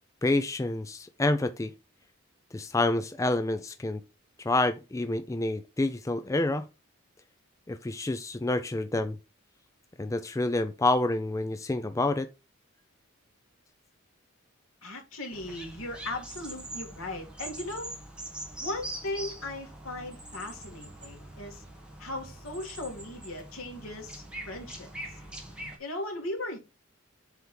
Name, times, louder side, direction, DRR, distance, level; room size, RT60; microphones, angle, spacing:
voice 1, 0.2-1.7 2.5-4.0 4.4-6.7 7.7-9.2 10.0-12.3, left 2 dB, 15° left, 0.3 m, -28 dB
voice 2, 14.8-17.9 18.6-21.6 22.0-25.2 25.8-26.6, left 1 dB, 85° left, 2.5 m, -38 dB
sound 1, 15.3-25.8, right 1 dB, 5° right, 1.6 m, -43 dB
8.0 x 3.5 x 4.6 m
head